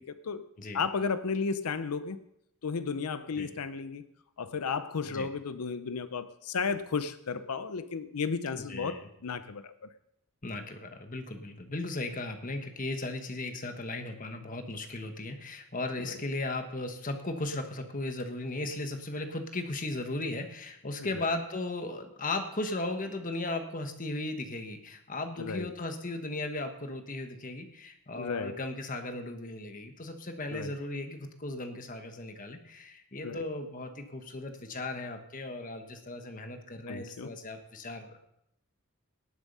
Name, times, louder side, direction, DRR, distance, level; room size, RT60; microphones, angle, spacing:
voice 1, 0.7-2.2 2.6-4.0 4.4-9.9 21.1-21.2 25.4-25.7 28.1-28.6 30.5-30.7 33.2-33.4 36.9-37.3, left 5 dB, 85° left, 12 dB, 0.6 m, -33 dB
voice 2, 8.7-9.1 10.4-38.2, left 2 dB, 35° left, 6 dB, 1.3 m, -36 dB
18.5 x 7.3 x 5.5 m, 0.80 s
head